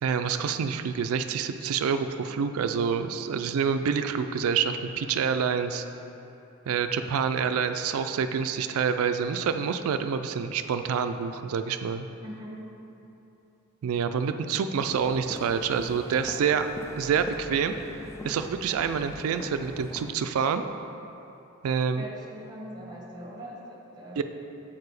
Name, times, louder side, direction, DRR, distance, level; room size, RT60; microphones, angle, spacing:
voice 1, 0.0-5.8 6.7-12.1 13.8-16.7 17.0-17.7 18.2-20.6 21.6-22.0 24.2-24.3, right 6 dB, 80° right, 9 dB, 0.3 m, -27 dB
voice 2, 12.2-12.8 22.0-24.2, equal, 20° right, -2 dB, 1.0 m, -41 dB
sound 1, 14.8-20.1, left 1 dB, 15° left, 0.3 m, -42 dB
7.2 x 4.8 x 4.7 m, 2.9 s
head